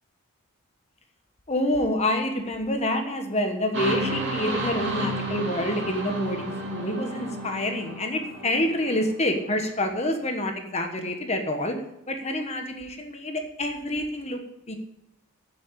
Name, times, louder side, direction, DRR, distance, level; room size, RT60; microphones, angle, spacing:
voice 1, 1.5-11.8 12.1-14.4 14.7-14.8, left 1 dB, 30° left, 5 dB, 1.2 m, -27 dB
sound 1, 3.7-9.5, right 1 dB, 55° right, 2.4 m, -32 dB
8.7 x 7.6 x 8.4 m, 0.85 s
head